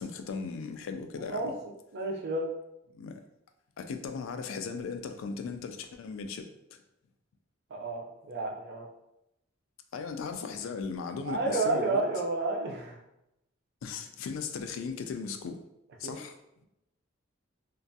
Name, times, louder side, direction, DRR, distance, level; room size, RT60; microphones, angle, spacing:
voice 1, 0.0-1.5 2.9-3.2 3.8-6.8 9.9-12.0 13.8-15.6 16.0-16.4, left 5 dB, 75° left, 0.3 m, -37 dB
voice 2, 1.9-2.5 7.7-8.9 11.2-13.0 16.0-16.2, right 2 dB, 55° right, 0.5 m, -31 dB
2.4 x 2.2 x 2.6 m
head